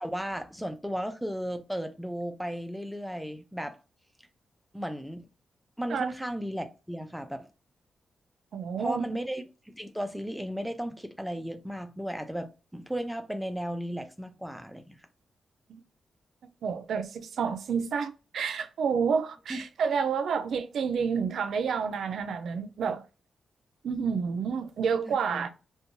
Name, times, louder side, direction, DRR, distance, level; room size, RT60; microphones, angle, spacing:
voice 1, 0.0-3.8 4.7-5.3 5.8-7.5 8.8-15.0 19.5-19.6 25.1-25.5, equal, ahead, 0.4 m, -35 dB
voice 2, 8.5-9.1 15.7-15.8 16.6-23.0 23.8-25.5, right 6 dB, 80° right, 0.3 m, -29 dB
2.6 x 2.2 x 2.8 m
wide cardioid pair, 145°, 0 cm